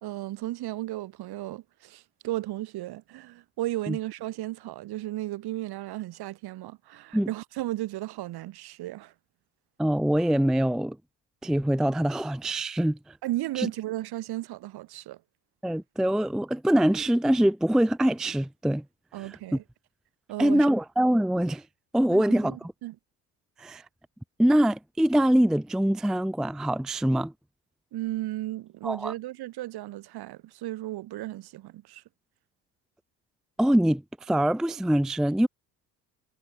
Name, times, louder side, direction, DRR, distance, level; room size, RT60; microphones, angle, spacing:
voice 1, 0.0-9.1 13.2-15.2 19.1-19.6 20.3-20.7 22.1-23.0 27.9-32.0, right 16 dB, 50° right, 2.1 m, -35 dB
voice 2, 9.8-11.0 11.4-13.0 13.6-13.7 15.6-18.8 19.2-19.3 20.4-21.6 21.9-22.6 23.6-23.8 24.4-27.3 28.8-29.1 33.6-35.5, right 1 dB, ahead, 0.5 m, -24 dB
figure-of-eight pair, 55°, 47 cm